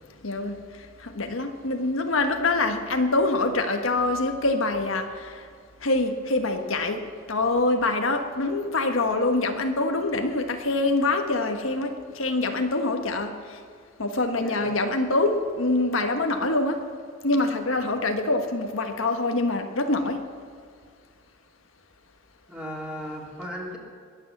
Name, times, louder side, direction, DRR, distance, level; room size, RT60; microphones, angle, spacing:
voice 1, 0.2-0.6 1.0-5.4 5.8-7.0 7.3-13.3 14.0-16.8 17.2-20.2, left 2 dB, 90° left, 5 dB, 1.4 m, -25 dB
voice 2, 14.4-14.7 22.5-23.8, equal, 5° right, -3 dB, 3.1 m, -36 dB
21.0 x 9.0 x 7.3 m, 2.1 s
head